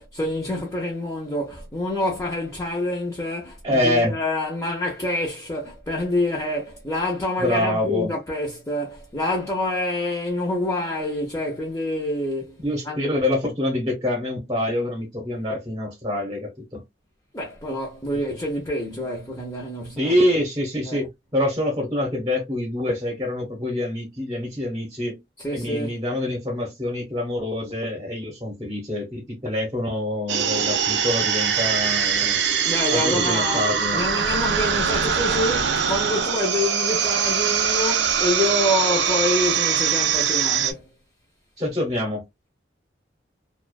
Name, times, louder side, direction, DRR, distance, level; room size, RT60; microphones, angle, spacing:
voice 1, 0.0-13.0 17.3-20.1 20.8-21.0 25.4-26.0 32.7-33.6 33.9-40.9, left 1 dB, 15° left, 0.6 m, -27 dB
voice 2, 3.6-4.1 7.4-8.1 12.6-16.8 20.0-25.2 25.5-32.4 32.9-34.0 41.6-42.2, left 1 dB, 20° right, 0.9 m, -26 dB
sound 1, 30.3-40.7, right 7 dB, 80° right, 0.5 m, -22 dB
2.4 x 2.2 x 2.3 m
head